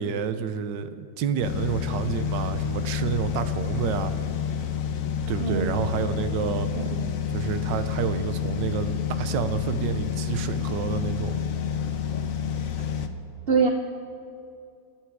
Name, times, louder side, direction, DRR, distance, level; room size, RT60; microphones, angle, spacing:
voice 1, 0.0-4.1 5.3-6.7 7.3-11.4, right 7 dB, 90° right, 11 dB, 1.5 m, -29 dB
sound 1, 1.4-13.1, left 8 dB, 55° left, 1.1 m, -29 dB
voice 2, 5.4-5.9 6.8-7.1 13.5-13.7, right 5 dB, 50° right, 3 dB, 0.7 m, -24 dB
26.0 x 9.3 x 4.8 m, 2.5 s
omnidirectional pair, 1.9 m